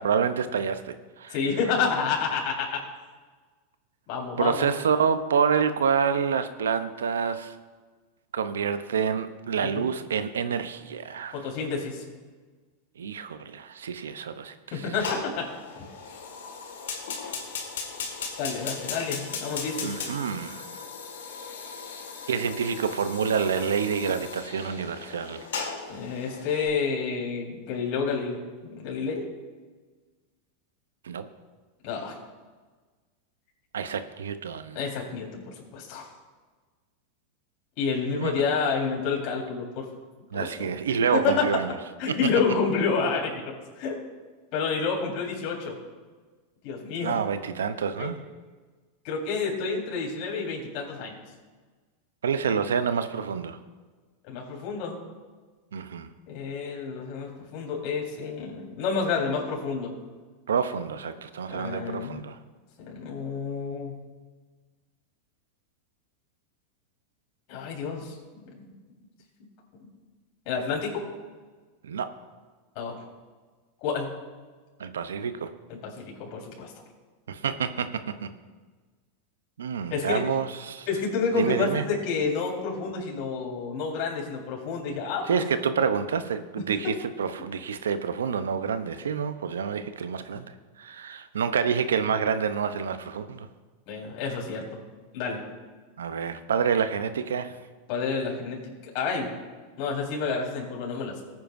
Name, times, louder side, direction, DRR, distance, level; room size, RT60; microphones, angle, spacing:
voice 1, 0.0-1.3 4.4-7.5 8.3-11.4 13.0-14.9 19.8-20.8 22.3-25.5 31.0-31.2 33.7-34.8 38.2-38.3 40.3-41.7 42.1-42.2 47.0-48.2 52.2-53.6 55.7-56.1 60.5-62.4 71.8-72.1 74.8-75.5 77.3-78.3 79.6-80.9 81.3-81.8 85.3-93.5 96.0-97.6, right 6 dB, 85° right, 11 dB, 0.7 m, -28 dB
voice 2, 1.3-2.8 4.1-4.7 9.6-9.9 11.3-12.0 14.7-15.5 18.4-20.0 25.9-29.3 31.8-32.1 34.7-36.1 37.8-39.9 40.3-41.5 42.0-44.0 44.5-45.8 46.6-47.2 48.0-48.2 49.0-51.2 54.3-55.0 56.3-59.9 61.5-62.2 62.9-64.0 67.5-68.7 70.5-71.0 72.8-73.0 73.8-74.1 75.8-76.7 79.9-80.2 80.9-85.4 93.9-94.8 95.1-95.4 97.9-99.3 99.8-101.2, left 5 dB, 55° left, -2 dB, 4.1 m, -29 dB
Fire, 15.0-26.7, left 5 dB, 80° left, 1.9 m, -37 dB
19.0 x 9.4 x 2.6 m, 1.4 s
hypercardioid pair, 105°, 0 cm